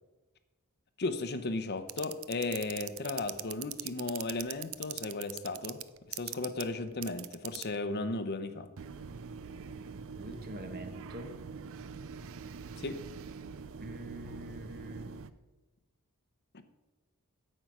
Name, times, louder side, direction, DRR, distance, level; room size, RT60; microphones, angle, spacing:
voice 1, 1.0-5.8 6.1-8.7 12.8-13.0, left 3 dB, 50° left, 10 dB, 0.8 m, -35 dB
sound 1, 1.9-7.8 8.8-15.3, right 8 dB, 65° right, 0.5 m, -42 dB
voice 2, 10.1-11.4 13.8-15.2, right 1 dB, 45° right, 7 dB, 1.3 m, -45 dB
9.1 x 7.8 x 5.9 m, 1.2 s
head